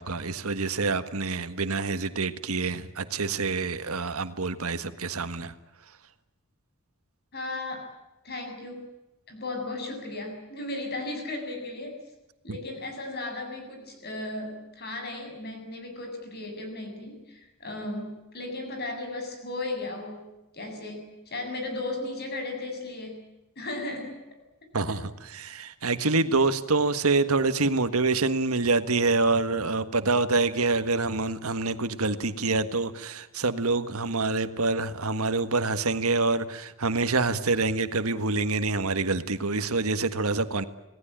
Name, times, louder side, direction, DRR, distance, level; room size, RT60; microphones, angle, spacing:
voice 1, 0.0-5.5 12.5-12.6 24.7-40.6, right 3 dB, 85° right, 10 dB, 1.6 m, -26 dB
voice 2, 7.3-7.9 8.2-8.8 9.3-12.0 12.4-20.3 20.5-24.2, left 2 dB, 50° left, 4 dB, 7.6 m, -35 dB
27.5 x 18.5 x 9.0 m, 1.0 s
head